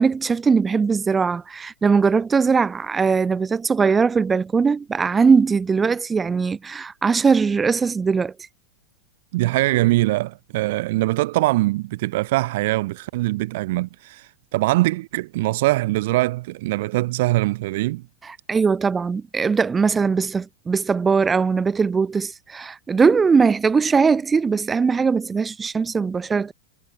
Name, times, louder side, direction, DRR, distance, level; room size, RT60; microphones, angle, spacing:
voice 1, 0.0-8.3 18.2-26.5, right 5 dB, 15° right, 1.5 m, -20 dB
voice 2, 9.3-18.0, right 19 dB, 50° right, 1.1 m, -22 dB
figure-of-eight pair, 90°, 0 cm